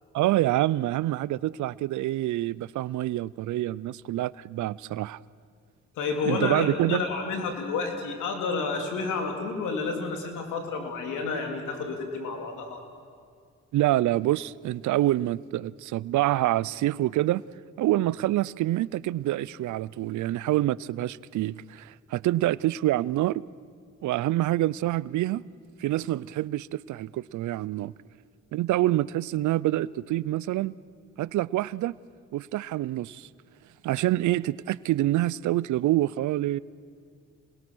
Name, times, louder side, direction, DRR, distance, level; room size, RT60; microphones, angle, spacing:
voice 1, 0.1-5.2 6.3-7.0 13.7-17.4 17.8-23.4 24.0-25.4 25.8-27.9 28.5-30.7 31.2-31.9 32.3-33.3 33.8-36.6, right 15 dB, 75° right, 0.5 m, -26 dB
voice 2, 5.9-12.8, left 4 dB, 85° left, 3.1 m, -30 dB
27.0 x 21.0 x 6.2 m
supercardioid pair, 65°, 30 cm